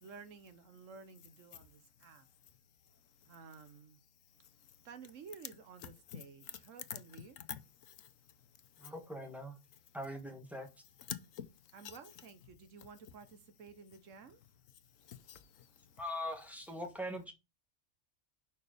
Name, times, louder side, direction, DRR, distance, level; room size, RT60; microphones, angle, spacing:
voice 1, 0.0-2.3 3.2-4.0 4.8-7.4 11.7-14.4, right 5 dB, 75° right, 1.2 m, -53 dB
voice 2, 5.8-6.6 6.9-8.1 8.8-8.9 11.1-11.5 11.8-12.0 15.0-15.8, left 10 dB, 80° left, 1.1 m, -47 dB
voice 3, 8.8-9.5 9.9-10.7 16.0-17.3, left 1 dB, ahead, 1.3 m, -41 dB
5.6 x 4.2 x 5.0 m
omnidirectional pair, 1.4 m